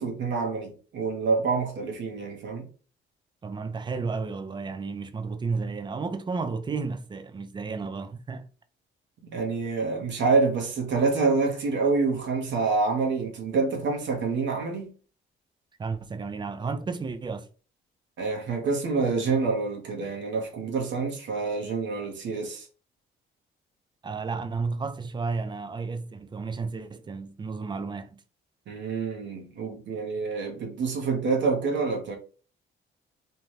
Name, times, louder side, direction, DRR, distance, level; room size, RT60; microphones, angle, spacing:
voice 1, 0.0-2.7 9.2-14.9 18.2-22.7 28.7-32.2, right 4 dB, 65° right, 0.8 m, -27 dB
voice 2, 3.4-8.5 15.8-17.5 24.0-28.2, right 4 dB, 25° right, 0.4 m, -32 dB
2.7 x 2.2 x 3.1 m
cardioid pair, 90°, 20 cm